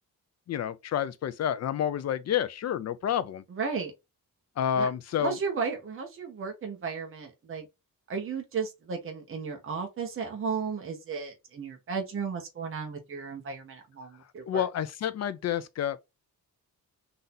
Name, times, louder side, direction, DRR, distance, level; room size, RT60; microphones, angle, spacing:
voice 1, 0.5-3.4 4.6-5.4 14.5-16.0, left 9 dB, 50° left, 0.5 m, -29 dB
voice 2, 3.5-3.9 4.7-4.9 5.2-7.7 8.1-14.6, right 5 dB, 35° right, 1.0 m, -34 dB
4.0 x 2.7 x 3.7 m
wide cardioid pair, 180°, 35 cm